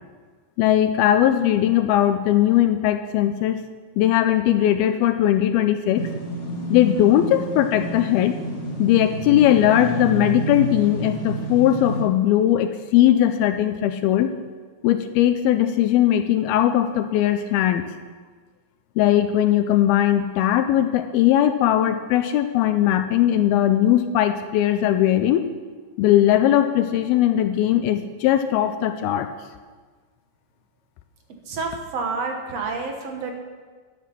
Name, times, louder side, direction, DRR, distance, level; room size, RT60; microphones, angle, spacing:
voice 1, 0.6-3.6 4.0-6.1 6.7-8.4 8.8-14.3 14.8-17.8 19.0-25.5 26.0-29.3, left 12 dB, 80° left, 9 dB, 2.3 m, -19 dB
sound 1, 5.9-12.0, right 1 dB, 40° left, 1.7 m, -29 dB
voice 2, 31.5-33.3, right 4 dB, 55° right, 2 dB, 1.9 m, -29 dB
12.5 x 10.5 x 6.1 m, 1.5 s
omnidirectional pair, 4.7 m